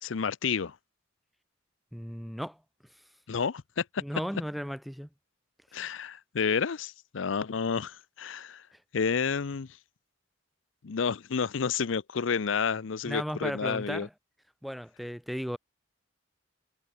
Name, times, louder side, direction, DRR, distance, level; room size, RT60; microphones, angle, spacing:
voice 1, 0.0-0.7 3.3-4.0 5.7-8.6 8.9-9.7 10.8-14.1, left 6 dB, 80° left, 0.6 m, -30 dB
voice 2, 1.9-2.6 4.0-5.1 13.1-14.1 14.6-15.6, equal, ahead, 0.4 m, -35 dB
head